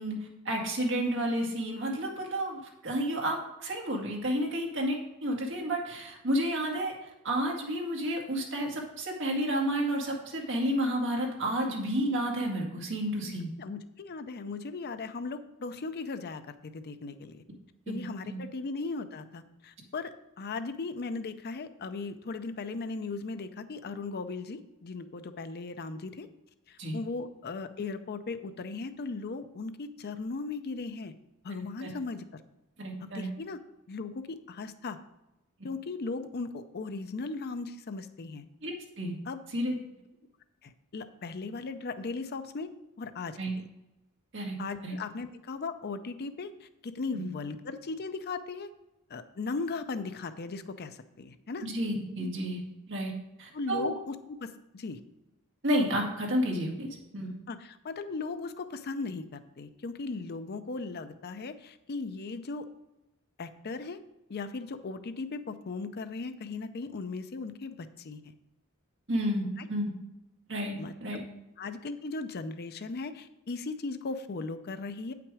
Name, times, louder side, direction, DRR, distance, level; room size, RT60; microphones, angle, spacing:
voice 1, 0.0-13.5 17.9-18.4 26.8-27.0 31.8-31.9 32.8-33.3 38.6-39.2 39.5-39.8 43.4-43.5 44.3-44.6 44.8-44.9 47.1-47.3 51.6-52.6 52.9-53.1 53.4-53.9 55.6-57.3 69.1-69.9 70.5-71.2, equal, 55° right, 0 dB, 1.9 m, -31 dB
voice 2, 13.2-17.4 17.9-26.3 26.7-31.1 31.4-32.2 33.0-33.6 33.9-35.0 35.6-38.4 39.3-39.4 40.6-42.7 43.0-43.6 44.6-48.7 49.1-51.7 53.5-55.0 57.5-62.7 63.4-64.0 64.3-68.3 69.6-69.7 70.8-71.2 71.6-75.1, left 3 dB, 45° left, 10 dB, 0.5 m, -37 dB
8.9 x 5.9 x 4.8 m, 0.96 s
head